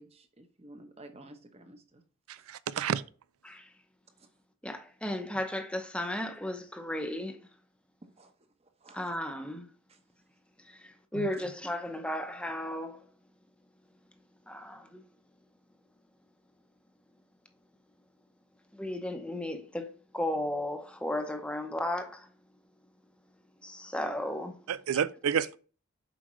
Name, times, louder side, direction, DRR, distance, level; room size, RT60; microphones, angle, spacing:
voice 1, 0.0-2.0 8.2-8.3 8.8-9.1, right 1 dB, 30° right, 0.9 m, -52 dB
voice 2, 2.3-3.0 11.1-11.3 24.7-25.6, right 8 dB, 80° right, 0.4 m, -30 dB
voice 3, 4.6-7.4 8.9-9.7 10.6-13.1 14.5-15.0 18.7-22.3 23.6-24.6, left 1 dB, 5° left, 0.7 m, -35 dB
7.3 x 4.9 x 3.1 m
head